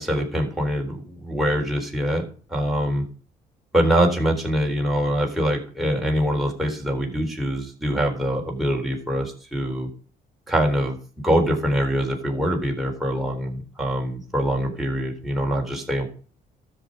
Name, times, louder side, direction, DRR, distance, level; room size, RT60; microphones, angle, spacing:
voice 1, 0.0-2.2 2.5-3.0 3.7-9.9 10.5-11.0 11.2-16.1, equal, ahead, -1 dB, 4.0 m, -24 dB
12.5 x 7.3 x 5.3 m, 0.41 s
cardioid pair, 80°, 17 cm